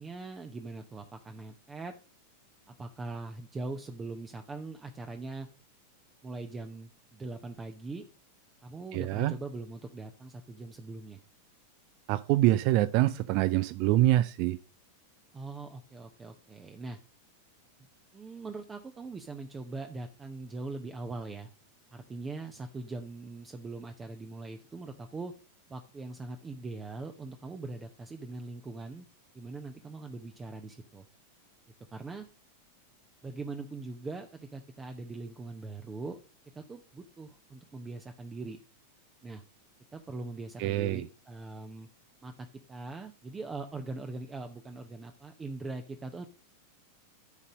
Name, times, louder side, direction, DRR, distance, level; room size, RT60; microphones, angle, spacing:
voice 1, 0.0-1.9 2.7-5.5 6.2-8.0 8.6-11.2 15.3-17.0 18.1-21.5 21.9-25.3 25.7-29.1 29.3-31.0 31.9-32.3 33.2-36.2 36.5-38.6 39.2-39.4 39.9-41.9 42.2-46.3, right 3 dB, 15° right, 6 dB, 0.7 m, -41 dB
voice 2, 8.9-9.3 12.1-14.6 40.6-41.0, right 15 dB, 45° right, 15 dB, 0.3 m, -25 dB
11.5 x 4.1 x 5.1 m, 0.37 s
figure-of-eight pair, 90°, 0 cm